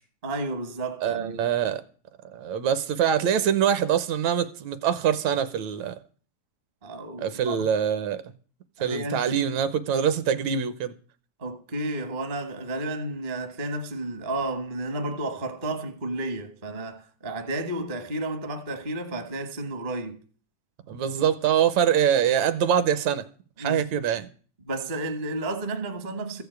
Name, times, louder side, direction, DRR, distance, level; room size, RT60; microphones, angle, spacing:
voice 1, 0.2-1.4 6.8-7.6 8.8-9.5 11.4-20.2 23.6-23.8 24.6-26.4, right 2 dB, 45° right, 0.6 m, -32 dB
voice 2, 1.0-1.8 2.3-6.0 7.2-8.2 8.8-10.9 20.9-23.3 23.6-24.3, right 8 dB, 70° right, 2.0 m, -24 dB
14.5 x 6.9 x 8.0 m
omnidirectional pair, 3.5 m